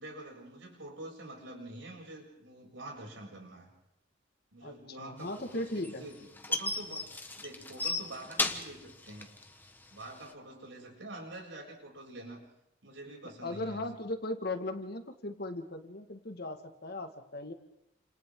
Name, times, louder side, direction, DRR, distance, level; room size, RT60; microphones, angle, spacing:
voice 1, 0.0-3.7 4.5-9.3 9.9-12.5 12.8-13.9, right 1 dB, 70° right, -1 dB, 7.5 m, -46 dB
voice 2, 4.6-6.0 13.4-17.5, left 2 dB, 55° left, 6 dB, 1.9 m, -38 dB
sound 1, 5.3-10.3, left 2 dB, 10° left, 1.3 m, -35 dB
29.5 x 28.0 x 3.9 m, 0.83 s
head